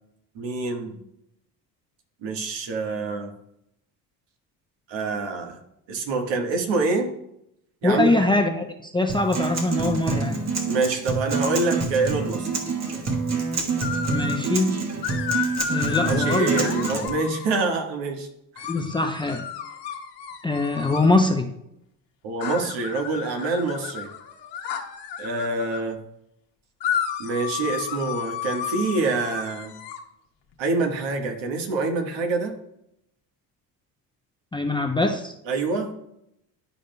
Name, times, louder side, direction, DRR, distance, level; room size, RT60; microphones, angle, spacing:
voice 1, 0.3-1.0 2.2-3.3 4.9-5.6 5.9-7.1 7.8-8.3 10.7-12.5 16.0-18.3 18.5-18.7 22.2-24.1 25.2-26.0 27.2-29.7 30.6-32.5 35.5-35.9, right 3 dB, 60° right, 3 dB, 1.5 m, -26 dB
voice 2, 7.8-10.4 14.1-14.8 15.7-16.7 18.7-19.5 20.4-21.5 34.5-35.3, left 2 dB, 10° left, 6 dB, 0.6 m, -23 dB
Acoustic guitar, 9.1-17.1, right 4 dB, 35° right, 1.4 m, -27 dB
sound 1, 13.8-14.5 15.0-17.8 18.6-21.2 22.4-25.8 26.8-30.0, left 8 dB, 55° left, 1.2 m, -32 dB
11.0 x 5.1 x 2.2 m, 0.79 s
hypercardioid pair, 65°, 50 cm